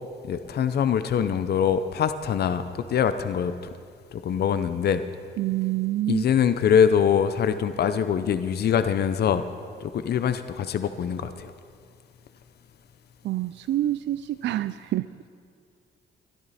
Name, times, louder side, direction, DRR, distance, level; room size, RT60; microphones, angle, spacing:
voice 1, 0.2-2.6 2.9-3.5 4.1-5.0 6.1-9.4 9.8-11.5, left 8 dB, 55° left, 11 dB, 0.7 m, -23 dB
voice 2, 5.4-6.2 13.2-15.1, right 14 dB, 65° right, 14 dB, 0.4 m, -27 dB
21.5 x 12.0 x 4.2 m, 2.3 s
cardioid pair, 90°, 20 cm